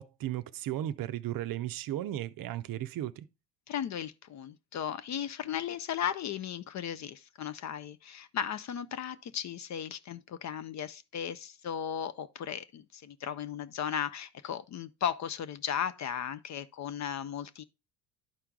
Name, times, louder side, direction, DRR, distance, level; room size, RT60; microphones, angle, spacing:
voice 1, 0.0-3.2, right 13 dB, 45° right, 0.6 m, -35 dB
voice 2, 3.7-17.6, left 9 dB, 35° left, 0.5 m, -36 dB
11.5 x 4.5 x 3.6 m
hypercardioid pair, 70°, 50 cm